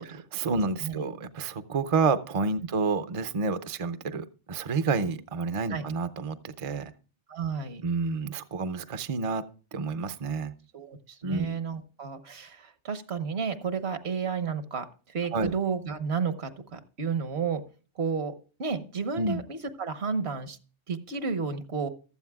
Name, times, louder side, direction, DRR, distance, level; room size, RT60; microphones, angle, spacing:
voice 1, 0.0-6.9 7.8-9.4 9.7-10.5 11.2-11.6 15.3-15.5 19.2-19.4, right 4 dB, 40° right, 11 dB, 0.6 m, -29 dB
voice 2, 7.3-7.8 10.7-17.6 18.0-20.6 20.9-21.9, right 5 dB, 70° right, 10 dB, 1.3 m, -32 dB
15.0 x 12.5 x 2.3 m, 0.36 s
omnidirectional pair, 1.1 m